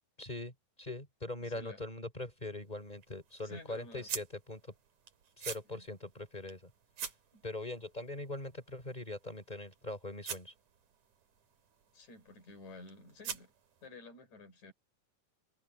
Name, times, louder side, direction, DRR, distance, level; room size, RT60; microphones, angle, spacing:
voice 1, 0.2-0.5 0.8-4.6 5.4-6.7 7.4-10.5, left 2 dB, 10° left, 3.9 m, -42 dB
voice 2, 1.4-1.8 3.4-4.1 5.7-5.9 7.3-7.4 11.9-13.5 13.8-14.7, left 3 dB, 45° left, 7.0 m, -52 dB
sound 1, 2.2-13.9, right 7 dB, 50° right, 3.6 m, -48 dB
omnidirectional pair, 4.6 m